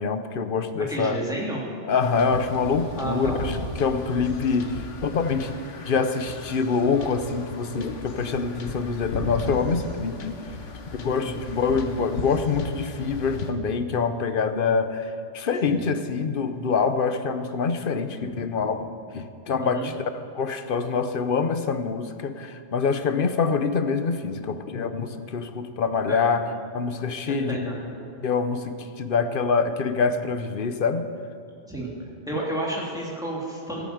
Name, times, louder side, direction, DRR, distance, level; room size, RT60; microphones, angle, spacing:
voice 1, 0.0-1.2 1.8-5.6 5.8-10.4 10.9-18.9 19.1-26.5 26.7-27.7 28.2-31.1, left 5 dB, 50° left, 9 dB, 0.9 m, -25 dB
voice 2, 0.9-1.6 2.9-3.4 11.2-11.4 15.6-15.8 19.6-19.9 26.1-26.2 27.3-27.7 31.7-31.9 32.3-33.9, right 1 dB, 5° right, -4 dB, 2.9 m, -31 dB
sound 1, 2.0-13.5, left 3 dB, 70° left, 1.4 m, -36 dB
14.0 x 9.3 x 7.9 m, 2.5 s
omnidirectional pair, 1.3 m